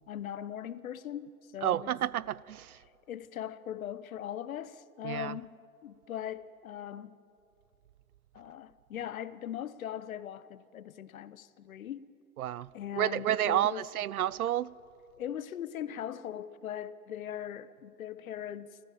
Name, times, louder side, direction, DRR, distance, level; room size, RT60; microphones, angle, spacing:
voice 1, 0.1-1.9 3.1-7.2 8.3-12.1 12.7-13.9 15.2-18.8, left 10 dB, 70° left, 1.1 m, -40 dB
voice 2, 1.6-2.8 5.0-5.3 12.4-12.7 13.0-14.7, right 12 dB, 75° right, 0.6 m, -30 dB
28.5 x 14.5 x 7.5 m
hypercardioid pair, 135°, 43 cm